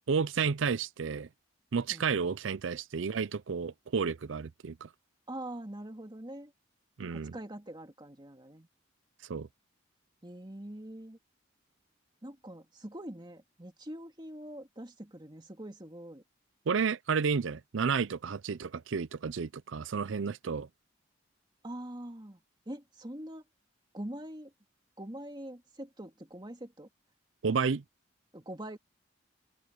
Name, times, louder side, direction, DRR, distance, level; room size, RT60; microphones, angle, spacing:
voice 1, 0.1-1.3 1.7-4.9 7.0-7.4 9.3-9.5 16.7-20.7 27.4-27.8, right 5 dB, 80° right, 0.5 m, -31 dB
voice 2, 5.3-6.5 7.0-8.7 10.2-11.2 12.2-16.2 21.6-23.4 23.9-24.5 25.0-26.9 28.3-28.8, right 1 dB, 25° right, 2.3 m, -44 dB
head